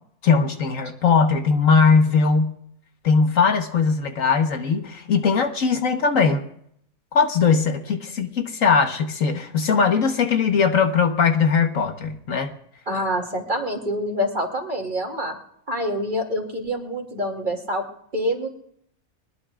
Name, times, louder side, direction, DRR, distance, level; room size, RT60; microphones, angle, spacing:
voice 1, 0.2-2.6 3.0-6.4 7.1-12.5, left 5 dB, 70° left, 5 dB, 1.6 m, -20 dB
voice 2, 12.9-15.4 15.7-17.8 18.1-18.5, equal, 35° right, 1 dB, 2.7 m, -26 dB
22.0 x 21.0 x 2.4 m, 0.69 s
omnidirectional pair, 1.4 m